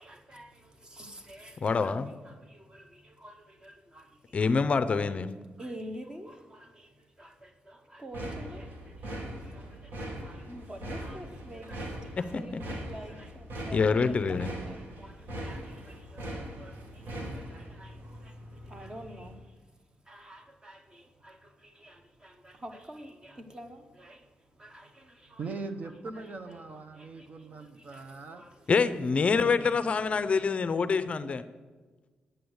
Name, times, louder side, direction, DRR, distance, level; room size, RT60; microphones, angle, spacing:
voice 1, 0.0-1.9 2.2-4.4 5.0-5.1 5.6-19.6 20.0-25.5 26.1-26.6 26.9-28.7 29.3-29.8, right 1 dB, 25° right, 1.1 m, -49 dB
voice 2, 1.6-2.1 4.3-5.3 12.3-12.6 13.7-14.5 28.7-31.4, left 5 dB, 35° left, 0.5 m, -26 dB
sound 1, 8.1-19.4, equal, 65° right, 2.0 m, -41 dB
voice 3, 25.4-28.4, right 3 dB, 50° right, 0.9 m, -40 dB
9.2 x 8.5 x 7.9 m
wide cardioid pair, 135°, 3 cm